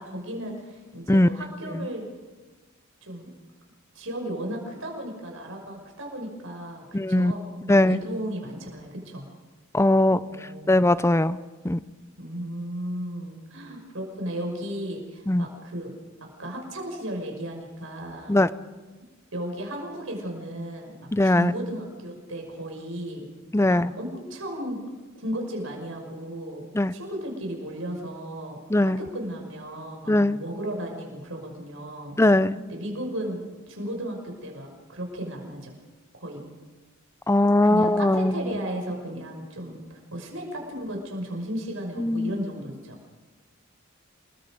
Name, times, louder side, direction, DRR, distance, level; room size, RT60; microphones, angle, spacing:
voice 1, 0.0-2.1 3.0-3.3 3.9-9.3 10.1-10.8 12.2-15.9 16.4-18.4 19.3-23.3 23.7-24.8 25.2-26.6 26.9-32.2 32.7-35.7 36.2-36.4 37.6-43.0, right 1 dB, 70° right, 2 dB, 5.9 m, -35 dB
voice 2, 6.9-7.3 7.7-8.0 9.7-10.2 10.7-11.4 11.6-11.8 15.3-15.5 18.3-18.5 21.1-21.5 23.5-23.9 26.7-26.9 28.7-29.0 30.1-30.4 32.2-32.6 37.3-38.5 42.0-42.4, left 1 dB, 15° left, 15 dB, 0.6 m, -20 dB
28.0 x 21.5 x 5.2 m, 1.3 s
head